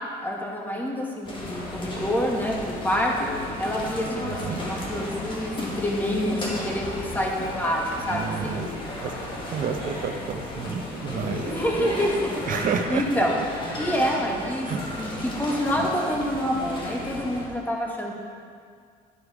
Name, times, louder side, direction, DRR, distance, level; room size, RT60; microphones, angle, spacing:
voice 1, 0.2-3.3 3.6-8.6 11.5-12.6 12.9-13.4 13.8-14.7 15.0-18.1, equal, 10° left, -2 dB, 1.6 m, -27 dB
sound 1, 1.2-17.4, left 1 dB, 30° left, 1.8 m, -34 dB
sound 2, 1.4-12.2, left 4 dB, 70° left, 0.9 m, -41 dB
voice 2, 4.2-4.6 8.1-9.1 9.5-11.9 12.5-13.3 14.6-14.8 15.7-15.9, right 6 dB, 55° right, 6 dB, 0.8 m, -31 dB
11.5 x 4.9 x 4.8 m, 2.1 s
cardioid pair, 110°, 17 cm